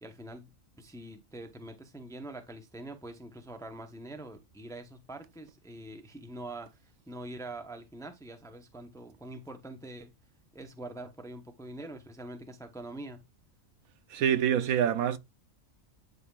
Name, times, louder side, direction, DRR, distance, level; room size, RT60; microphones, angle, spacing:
voice 1, 0.0-6.8 7.1-10.1 10.5-13.2, right 2 dB, 5° left, 0.7 m, -44 dB
voice 2, 14.1-15.2, right 9 dB, 85° right, 1.2 m, -26 dB
11.5 x 5.4 x 2.4 m
omnidirectional pair, 1.5 m